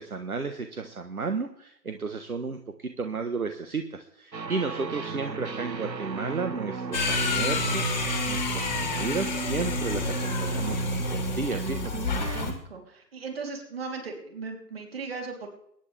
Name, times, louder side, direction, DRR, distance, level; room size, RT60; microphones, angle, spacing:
voice 1, 0.0-12.1, right 4 dB, 60° right, 7 dB, 1.4 m, -33 dB
sound 1, 4.3-12.5, right 4 dB, 80° right, 1.1 m, -35 dB
sound 2, 6.9-12.5, left 2 dB, 25° left, 1.9 m, -29 dB
voice 2, 11.9-15.5, right 4 dB, 35° right, 2 dB, 3.4 m, -38 dB
23.0 x 10.5 x 3.4 m, 0.73 s
figure-of-eight pair, 150°, 50 cm